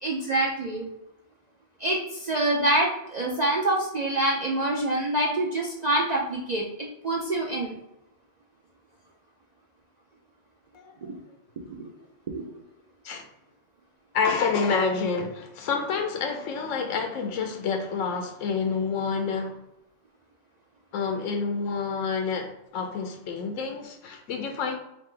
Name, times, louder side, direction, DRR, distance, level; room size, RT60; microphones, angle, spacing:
voice 1, 0.0-0.9 1.8-7.8 11.0-11.2 11.7-11.9 12.3-12.4, right 1 dB, 50° right, 0.5 m, -26 dB
voice 2, 10.7-11.2 13.0-13.3 14.1-19.6 20.9-24.8, left 5 dB, 90° left, 1.0 m, -28 dB
4.0 x 2.5 x 3.7 m
omnidirectional pair, 1.3 m